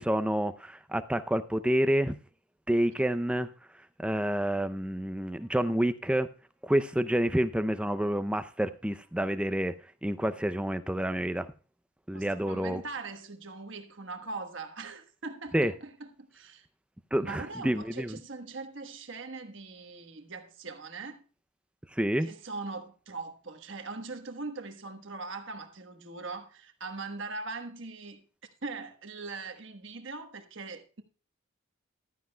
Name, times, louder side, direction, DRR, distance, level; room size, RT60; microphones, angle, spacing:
voice 1, 0.0-2.2 2.7-3.5 4.0-6.3 6.6-9.7 10.0-11.5 12.1-12.8 15.5-15.7 17.1-18.2 21.9-22.3, right 1 dB, 5° right, 0.4 m, -28 dB
voice 2, 12.1-16.7 17.2-21.3 22.2-28.2 28.6-31.0, right 3 dB, 60° right, 1.3 m, -41 dB
15.0 x 12.5 x 2.2 m
head